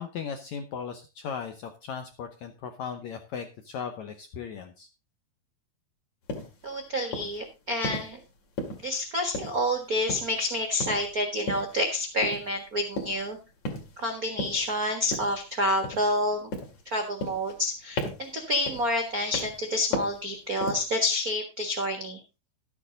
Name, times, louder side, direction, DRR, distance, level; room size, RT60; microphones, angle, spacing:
voice 1, 0.0-4.9, left 6 dB, 75° left, 7 dB, 1.6 m, -37 dB
sound 1, 6.3-6.5 7.1-7.4 7.8-8.1 8.6-9.0 9.3-9.8 10.1-10.4 10.8-11.1 11.5-11.7 12.2-12.5 13.0-13.3 13.6-14.0 14.4-14.7 15.1-15.4 15.8-16.2 16.5-16.8 17.2-17.7 18.0-18.3 18.7-19.0 19.3-19.6 19.9-20.2 20.6-20.9, left 2 dB, 50° left, 3.2 m, -34 dB
voice 2, 6.6-8.2 8.8-13.4 14.0-16.5 16.8-22.2, left 1 dB, 90° right, 5 dB, 0.8 m, -28 dB
12.5 x 8.4 x 3.9 m, 0.29 s
omnidirectional pair, 4.4 m